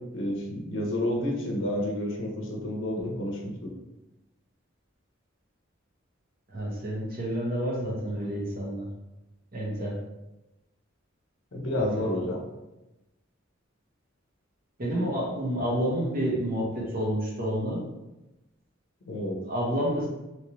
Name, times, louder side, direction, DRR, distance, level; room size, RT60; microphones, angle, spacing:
voice 1, 0.1-3.7 11.5-12.4 19.0-19.4, left 1 dB, 70° left, 0 dB, 0.7 m, -30 dB
voice 2, 6.5-8.9 9.5-10.0 11.7-12.1 14.8-17.8 19.5-20.1, equal, 45° right, -3 dB, 1.0 m, -29 dB
3.0 x 2.9 x 3.0 m, 1.0 s
head